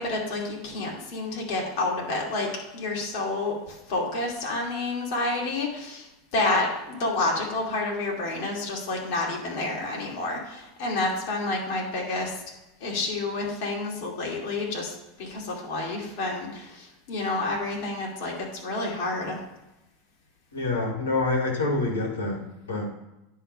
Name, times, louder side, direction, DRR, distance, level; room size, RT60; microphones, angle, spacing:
voice 1, 0.0-2.5 2.7-12.4 12.8-19.4, left 2 dB, 55° left, -2 dB, 2.6 m, -29 dB
voice 2, 20.5-22.9, left 2 dB, 80° left, 0 dB, 2.0 m, -27 dB
9.9 x 3.5 x 5.5 m, 0.94 s
hypercardioid pair, 85°, 0 cm